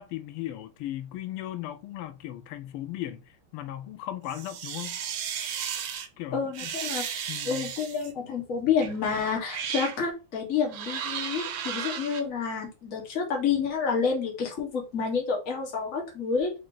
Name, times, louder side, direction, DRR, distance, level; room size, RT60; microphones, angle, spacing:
voice 1, 0.0-3.2 3.5-5.0 6.2-6.7 7.3-7.7, left 13 dB, 90° left, 1.5 m, -37 dB
sound 1, 4.3-6.1 6.5-8.1 8.8-9.0 9.4-10.0 10.7-12.2, right 8 dB, 85° right, 1.7 m, -34 dB
voice 2, 6.3-7.0 7.4-16.6, left 6 dB, 40° left, 1.5 m, -29 dB
3.9 x 3.3 x 3.8 m
omnidirectional pair, 2.4 m